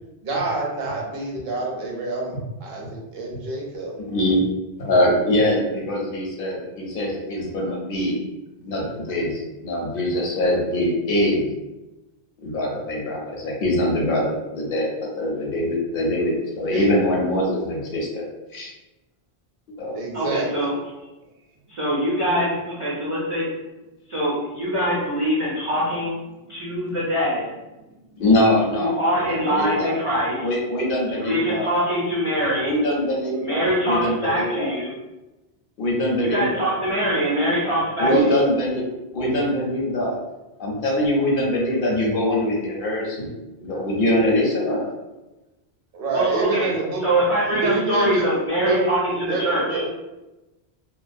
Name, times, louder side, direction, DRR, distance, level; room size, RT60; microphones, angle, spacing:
voice 1, 0.2-2.3 2.6-3.9 16.7-16.9 19.9-20.7 38.0-38.5 45.9-47.0 47.5-48.3 48.6-48.8 49.3-49.9, right 3 dB, 70° right, -2 dB, 0.8 m, -26 dB
voice 2, 4.0-4.4 4.8-8.2 8.6-11.5 12.4-18.2 18.5-18.7 19.8-20.0 28.2-29.9 30.4-31.7 32.6-34.7 35.8-36.7 38.0-38.8 39.1-40.1 40.6-43.3 43.6-44.9, left 1 dB, 60° left, -2 dB, 0.8 m, -23 dB
voice 3, 20.1-20.7 21.7-23.5 24.1-26.2 26.5-27.5 28.8-30.5 31.2-32.7 33.4-34.9 36.2-38.1 46.1-46.7 47.0-49.8, equal, 50° right, -6 dB, 0.4 m, -23 dB
2.3 x 2.2 x 2.5 m, 1.0 s
omnidirectional pair, 1.1 m